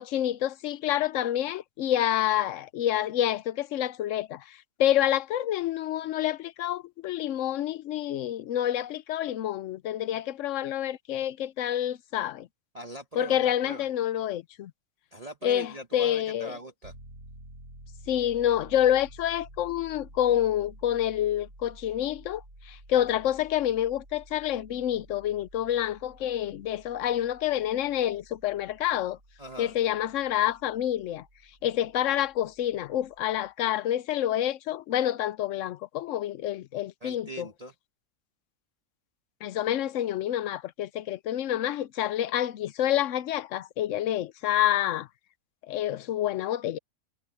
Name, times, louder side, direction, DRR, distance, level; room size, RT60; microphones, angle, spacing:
voice 1, 0.0-12.5 13.2-14.7 15.4-16.5 18.1-29.2 29.6-31.2 31.6-37.5 39.4-45.1 45.7-46.8, left 11 dB, 65° left, 0.9 m, -28 dB
voice 2, 12.7-13.9 15.1-16.9 29.4-29.8 37.0-37.7, right 1 dB, 25° right, 1.3 m, -41 dB
Piano, 16.8-33.5, right 1 dB, 55° right, 7.3 m, -52 dB
omnidirectional pair, 1.6 m